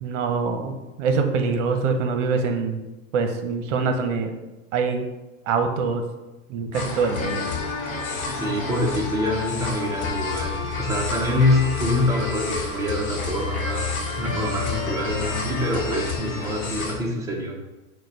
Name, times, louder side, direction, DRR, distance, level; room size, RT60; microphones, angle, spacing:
voice 1, 0.0-2.8 3.1-4.3 4.7-5.1 5.5-6.0 6.5-7.5, right 5 dB, 60° right, 6 dB, 0.8 m, -24 dB
sound 1, 6.7-16.9, left 4 dB, 40° left, 1.0 m, -29 dB
voice 2, 8.4-17.6, left 1 dB, 10° right, -2 dB, 0.5 m, -25 dB
4.5 x 2.2 x 4.7 m, 1.1 s
hypercardioid pair, 130°, 41 cm